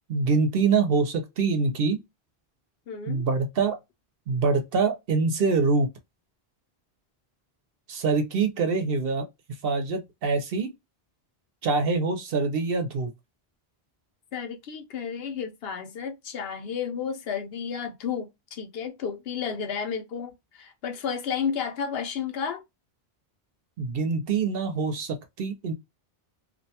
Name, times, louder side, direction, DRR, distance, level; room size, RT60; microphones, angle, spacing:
voice 1, 0.1-2.0 3.1-3.8 4.3-5.9 7.9-9.3 9.6-10.7 11.6-13.1 23.8-25.7, right 4 dB, 70° right, 0.8 m, -25 dB
voice 2, 2.9-3.3 14.3-22.6, left 7 dB, 75° left, 0.8 m, -32 dB
2.5 x 2.2 x 2.7 m
omnidirectional pair, 1.0 m